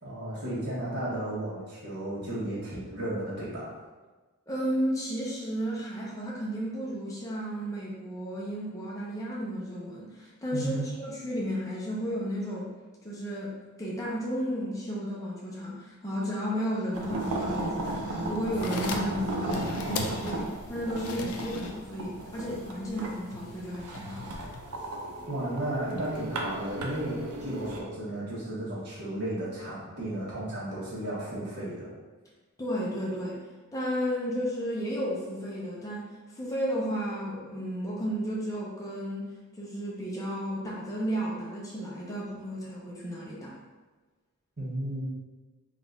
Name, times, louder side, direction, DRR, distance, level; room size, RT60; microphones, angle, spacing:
voice 1, 0.0-3.7 10.5-10.9 25.3-31.9 44.6-45.1, right 1 dB, 50° right, -9 dB, 1.3 m, -34 dB
voice 2, 4.5-12.7 13.0-24.3 32.6-33.4 33.7-39.3 39.6-43.5, equal, 15° left, -5 dB, 0.5 m, -33 dB
sound 1, 16.9-27.8, right 2 dB, 85° right, 0.6 m, -35 dB
sound 2, 18.4-25.3, left 4 dB, 75° left, 0.4 m, -41 dB
3.8 x 2.4 x 3.9 m, 1.3 s
head